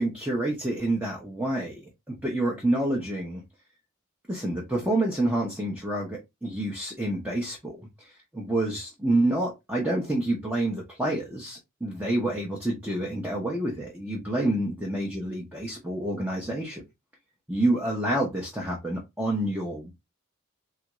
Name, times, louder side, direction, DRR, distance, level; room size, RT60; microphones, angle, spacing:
voice 1, 0.0-3.4 4.3-16.8 17.5-19.9, right 1 dB, 10° right, 0.7 m, -28 dB
3.4 x 2.4 x 3.0 m
head